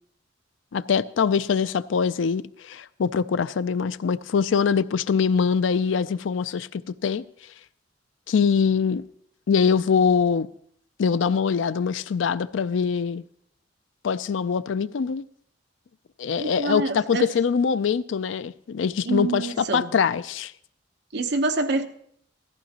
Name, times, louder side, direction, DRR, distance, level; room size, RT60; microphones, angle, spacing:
voice 1, 0.7-7.3 8.3-9.0 9.5-10.5 11.0-13.2 14.0-15.3 16.2-20.5, left 6 dB, 80° left, 0.4 m, -23 dB
voice 2, 16.4-17.3 19.0-19.9 21.1-21.8, right 3 dB, 65° right, 0.9 m, -26 dB
17.0 x 14.5 x 2.9 m
head